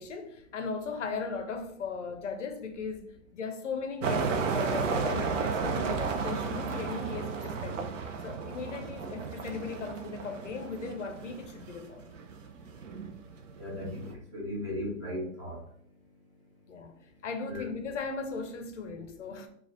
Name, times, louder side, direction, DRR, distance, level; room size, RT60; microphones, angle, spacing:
voice 1, 0.0-7.9 8.2-12.0 16.7-16.9 17.2-19.5, left 4 dB, 55° left, 0.5 m, -37 dB
sound 1, 4.0-14.1, right 5 dB, 60° right, 0.6 m, -34 dB
voice 2, 13.6-15.6 17.5-17.6, left 1 dB, 20° right, 0.6 m, -36 dB
3.2 x 2.3 x 3.8 m
hypercardioid pair, 175°, 44 cm